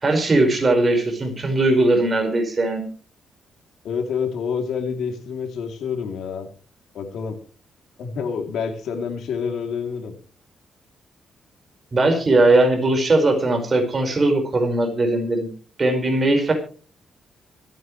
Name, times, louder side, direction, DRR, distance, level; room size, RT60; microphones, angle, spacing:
voice 1, 0.0-2.9 11.9-15.5 15.8-16.5, right 2 dB, 30° right, 4 dB, 5.0 m, -19 dB
voice 2, 3.8-6.5 6.9-7.4 8.0-10.1, left 6 dB, 80° left, 5 dB, 3.0 m, -27 dB
25.0 x 9.3 x 3.2 m, 0.39 s
cardioid pair, 130°, 0 cm